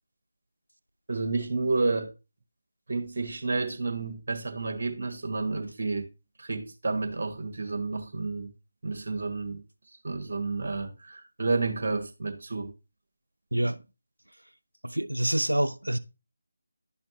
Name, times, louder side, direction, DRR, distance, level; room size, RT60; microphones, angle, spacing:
voice 1, 1.1-2.1 2.9-6.1 6.4-8.5 8.8-9.6 10.0-12.7, right 3 dB, 50° right, 1.5 m, -30 dB
voice 2, 13.5-13.8 14.8-16.0, right 1 dB, 85° right, 0.5 m, -27 dB
11.0 x 4.3 x 2.7 m
figure-of-eight pair, 155°, 0 cm